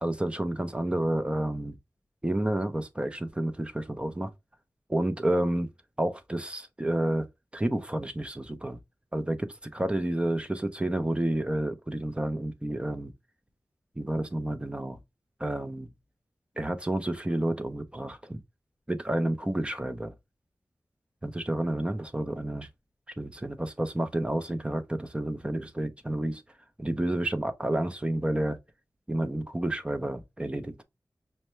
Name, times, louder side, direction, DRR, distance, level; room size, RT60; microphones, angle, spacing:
voice 1, 0.0-1.8 2.2-4.3 4.9-5.7 6.0-7.3 7.5-8.8 9.1-13.1 14.0-15.0 15.4-15.9 16.6-18.4 18.9-20.1 21.2-22.7 23.2-26.4 26.8-28.6 29.1-30.8, right 1 dB, 15° right, 0.6 m, -30 dB
5.4 x 2.2 x 3.0 m
wide cardioid pair, 65°, 7 cm